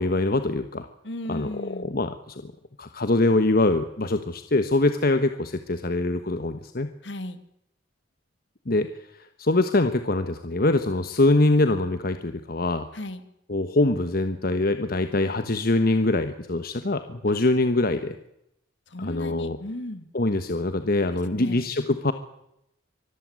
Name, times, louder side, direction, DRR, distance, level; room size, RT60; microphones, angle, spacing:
voice 1, 0.0-0.9 1.3-2.5 2.8-6.9 8.7-8.9 9.4-12.9 13.5-18.2 19.0-19.6 20.1-22.1, left 2 dB, 55° left, 9 dB, 1.3 m, -23 dB
voice 2, 1.0-2.0 7.0-7.4 12.9-13.2 18.9-20.1 21.3-21.7, left 1 dB, 70° left, 10 dB, 2.4 m, -35 dB
24.5 x 14.0 x 9.6 m, 0.79 s
head